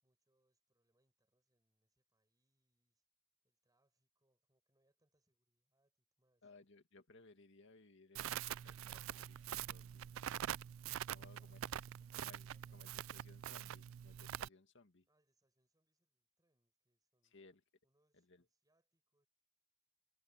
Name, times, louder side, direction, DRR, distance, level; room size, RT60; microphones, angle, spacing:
voice 1, 0.0-3.0 3.4-6.7 11.1-13.0 15.1-17.4 17.8-19.3, right 1 dB, 20° right, 6.2 m, -85 dB
voice 2, 6.4-10.1 11.1-11.8 12.2-15.1 17.2-17.6 18.1-18.4, left 3 dB, 65° left, 2.1 m, -63 dB
Crackle, 8.1-14.5, right 11 dB, 80° right, 0.3 m, -45 dB
head